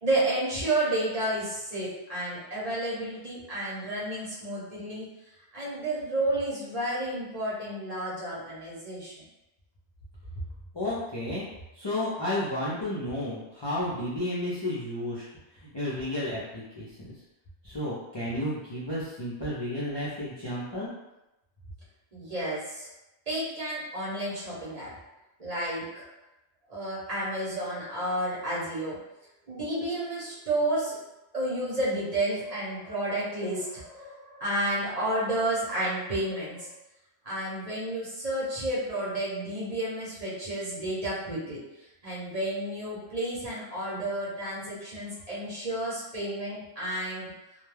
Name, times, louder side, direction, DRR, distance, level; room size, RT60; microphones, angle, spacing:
voice 1, 0.0-5.1 5.5-9.1 22.1-22.9 23.3-24.9 25.4-26.1 26.7-29.0 29.5-31.0 31.3-36.7 37.2-41.6 42.0-47.3, right 1 dB, 40° right, -8 dB, 0.9 m, -31 dB
voice 2, 10.7-11.5 11.7-15.3 15.6-17.1 17.6-20.9, left 1 dB, 35° left, -9 dB, 0.4 m, -32 dB
2.2 x 2.2 x 3.2 m, 0.95 s
omnidirectional pair, 1.1 m